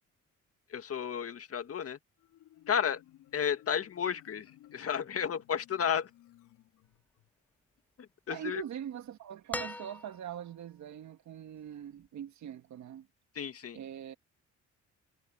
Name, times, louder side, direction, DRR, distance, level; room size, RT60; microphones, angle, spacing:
voice 1, 0.7-2.0 2.7-3.0 3.3-6.1 8.3-8.6 13.4-13.8, left 8 dB, 50° left, 1.9 m, -32 dB
Marimba xylophone, 2.2-7.3, left 13 dB, 90° left, 4.0 m, -59 dB
voice 2, 8.3-13.1 13.7-14.1, right 10 dB, 70° right, 1.8 m, -42 dB
sound 1, 9.5-10.5 12.0-12.1, left 1 dB, 5° left, 0.5 m, -40 dB
cardioid pair, 90°, 30 cm